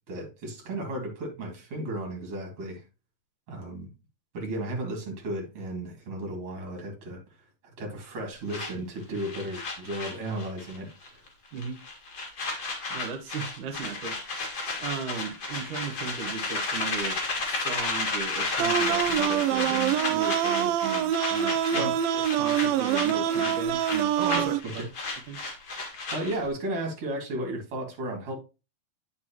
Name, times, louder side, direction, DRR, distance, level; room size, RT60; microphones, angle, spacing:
voice 1, 0.1-2.8 3.5-3.9 4.3-7.2 7.8-11.2 21.7-21.9 24.3-24.9 26.1-28.4, right 1 dB, 45° right, 3.0 m, -34 dB
sound 1, 8.5-10.8 11.0-11.3 11.6-26.5, left 3 dB, 35° left, 1.9 m, -32 dB
voice 2, 12.9-14.2 14.8-17.2 17.5-24.5 25.3-25.4, right 5 dB, 65° right, 2.6 m, -36 dB
sound 2, 18.6-24.6, right 10 dB, 85° right, 2.4 m, -25 dB
9.4 x 5.6 x 2.9 m
omnidirectional pair, 4.1 m